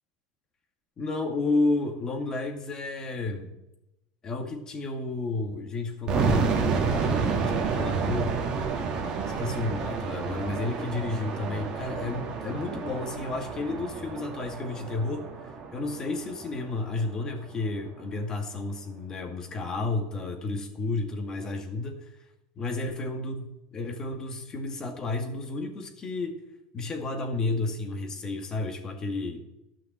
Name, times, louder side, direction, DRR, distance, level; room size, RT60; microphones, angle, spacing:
voice 1, 1.0-3.5 4.2-6.9 7.7-8.4 9.4-22.1 22.6-26.3 26.7-29.4, left 3 dB, 30° left, 3 dB, 2.2 m, -31 dB
sound 1, 6.1-16.9, right 5 dB, 35° right, 2.0 m, -30 dB
13.0 x 5.9 x 7.5 m, 0.91 s
supercardioid pair, 125°, 2 cm